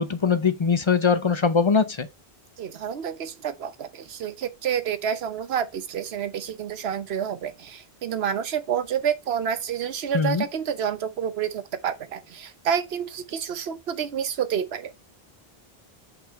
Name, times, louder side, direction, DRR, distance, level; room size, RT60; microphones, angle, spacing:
voice 1, 0.0-2.1 10.1-10.4, left 5 dB, 35° left, 0.5 m, -21 dB
voice 2, 2.6-14.9, right 8 dB, 75° right, 1.0 m, -29 dB
5.5 x 4.1 x 4.5 m
omnidirectional pair, 1.1 m